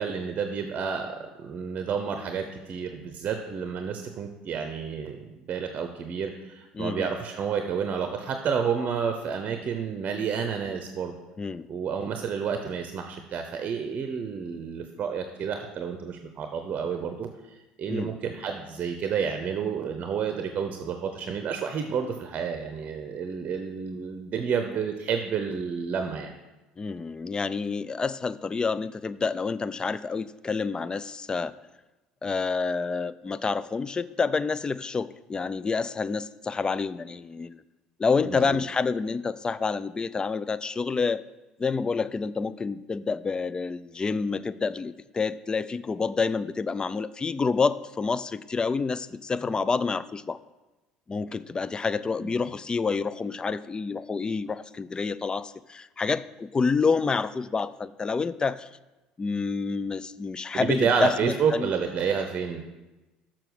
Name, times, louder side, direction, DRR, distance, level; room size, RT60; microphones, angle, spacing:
voice 1, 0.0-11.1 11.7-26.3 38.2-38.6 52.2-52.3 60.5-62.6, right 6 dB, 45° right, 6 dB, 0.7 m, -30 dB
voice 2, 6.8-7.1 11.4-11.7 17.9-18.1 26.8-31.5 32.2-37.6 38.0-41.2 41.6-50.4 51.1-58.7 59.2-61.7, left 4 dB, 25° left, 16 dB, 0.3 m, -28 dB
6.7 x 6.0 x 6.1 m, 1.1 s
hypercardioid pair, 70°, 4 cm